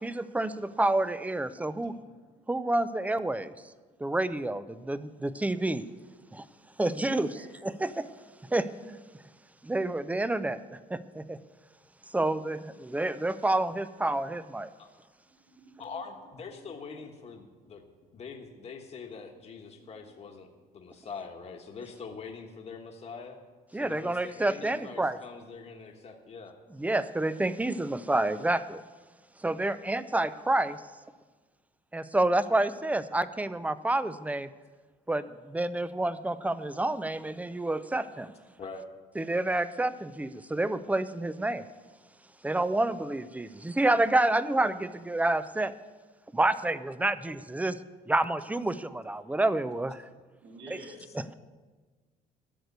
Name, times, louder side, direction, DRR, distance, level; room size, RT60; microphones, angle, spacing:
voice 1, 0.0-1.9 2.5-3.5 4.0-5.8 6.3-6.4 6.8-7.4 7.6-8.1 8.5-9.0 9.6-10.6 10.9-11.4 12.1-14.7 23.7-25.2 26.8-28.8 29.4-30.8 31.9-34.5 35.1-38.3 39.2-41.7 42.4-45.7 46.3-47.8 48.1-50.0, right 2 dB, 10° right, 14 dB, 0.5 m, -28 dB
voice 2, 1.8-2.1 2.4-2.5 6.5-6.6 7.2-7.5 15.2-16.0 16.5-16.6 16.9-17.1 19.8-19.9 21.0-21.1 50.4-51.1, right 2 dB, 65° right, -2 dB, 4.1 m, -51 dB
voice 3, 15.8-17.8 18.1-23.4 23.7-26.6 29.5-29.8 38.6-38.9 51.1-51.2, left 5 dB, 40° left, 2 dB, 1.3 m, -44 dB
12.5 x 6.6 x 9.4 m, 1.4 s
cardioid pair, 110°, 17 cm